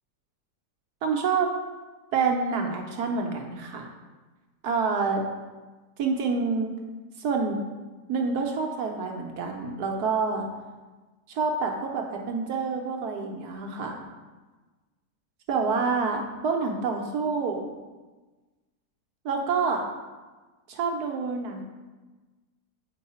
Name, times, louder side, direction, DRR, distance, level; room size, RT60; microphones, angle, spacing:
voice 1, 1.0-1.5 2.1-3.9 4.6-5.2 6.0-6.7 7.2-7.6 8.1-10.5 11.3-14.0 15.5-17.7 19.2-19.9 20.7-21.6, right 4 dB, 80° right, 2 dB, 1.3 m, -27 dB
8.1 x 4.6 x 4.2 m, 1.3 s
omnidirectional pair, 1.7 m